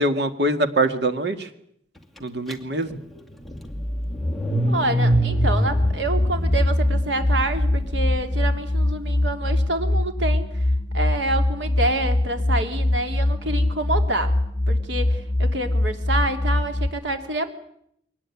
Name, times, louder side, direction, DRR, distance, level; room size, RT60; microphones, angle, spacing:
voice 1, 0.0-1.5 2.2-3.0, right 1 dB, 65° right, 9 dB, 2.1 m, -23 dB
Car / Engine starting, 2.5-2.6 2.9-8.1, equal, ahead, 2.4 m, -25 dB
voice 2, 4.7-10.5 10.9-14.4 14.7-17.5, right 2 dB, 90° right, 6 dB, 3.1 m, -27 dB
sound 1, 5.1-16.9, left 1 dB, 20° left, 2.2 m, -23 dB
23.5 x 19.0 x 9.7 m, 0.72 s
head